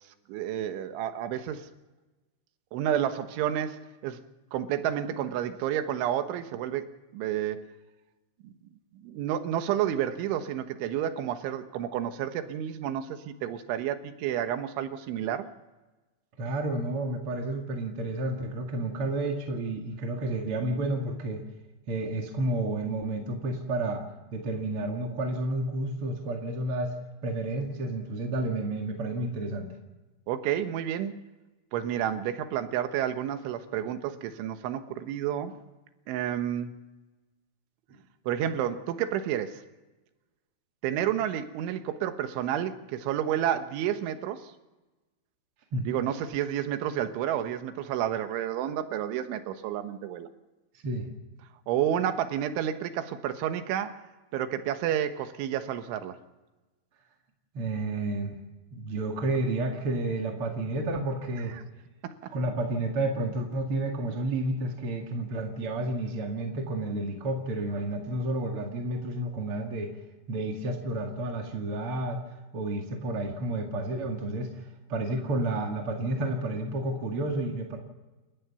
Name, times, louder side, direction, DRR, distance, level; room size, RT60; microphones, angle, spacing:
voice 1, 0.3-1.7 2.7-4.2 4.5-7.6 8.4-8.5 8.9-15.5 30.3-31.2 31.7-35.5 36.1-36.7 38.3-39.6 40.8-44.5 45.9-50.3 51.7-53.9 54.3-56.2 61.5-61.6 62.0-62.3, right 10 dB, 80° right, 9 dB, 3.6 m, -30 dB
voice 2, 16.4-21.4 21.9-24.0 24.3-26.9 27.2-29.7 45.7-45.9 50.8-51.1 57.5-58.4 58.7-61.6 62.3-69.9 70.3-72.2 72.5-74.6 74.9-77.8, right 2 dB, 45° right, 1 dB, 2.0 m, -31 dB
29.5 x 14.0 x 7.0 m, 1.2 s
omnidirectional pair, 5.4 m